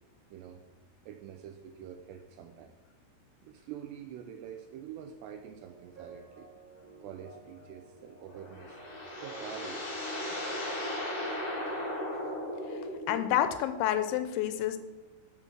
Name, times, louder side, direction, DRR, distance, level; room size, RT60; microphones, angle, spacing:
voice 1, 0.3-0.6 1.1-2.8 3.4-6.5 7.0-8.8 9.2-9.9, right 9 dB, 80° right, 6 dB, 2.5 m, -46 dB
sound 1, 5.6-12.1, right 4 dB, 45° right, 4.1 m, -54 dB
sound 2, 8.2-13.4, left 1 dB, 60° left, 1.4 m, -36 dB
voice 2, 13.1-14.8, left 11 dB, 85° left, 10 dB, 3.0 m, -29 dB
11.5 x 5.2 x 6.1 m, 1.1 s
omnidirectional pair, 5.4 m